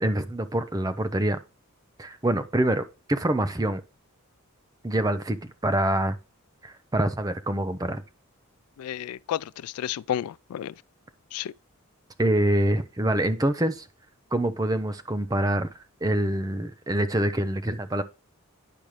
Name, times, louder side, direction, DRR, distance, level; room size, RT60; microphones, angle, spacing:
voice 1, 0.0-1.4 2.0-3.8 4.8-6.2 6.6-8.0 12.2-13.9 14.3-15.7 16.0-18.0, right 1 dB, 15° right, 0.6 m, -25 dB
voice 2, 8.8-10.7 11.3-11.5, left 10 dB, 90° left, 0.3 m, -31 dB
10.0 x 5.2 x 3.1 m
head